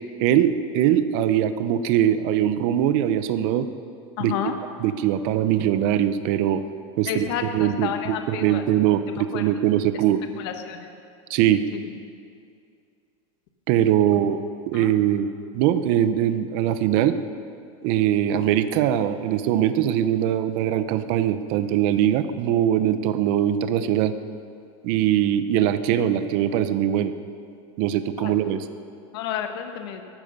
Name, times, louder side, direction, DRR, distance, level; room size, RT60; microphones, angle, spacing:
voice 1, 0.2-3.7 4.2-4.3 4.8-6.6 7.0-7.3 7.5-10.2 11.3-11.6 13.7-14.4 14.7-17.2 17.8-24.1 24.8-27.1 27.8-28.6, right 11 dB, 40° right, 11 dB, 0.7 m, -22 dB
voice 2, 4.2-4.5 7.1-8.6 9.3-9.5 10.4-10.9 11.7-11.8 14.1-14.2 14.7-14.9 28.2-28.3 29.1-30.0, left 9 dB, 50° left, 6 dB, 1.3 m, -31 dB
18.5 x 14.0 x 5.4 m, 2.4 s
supercardioid pair, 175°, 17 cm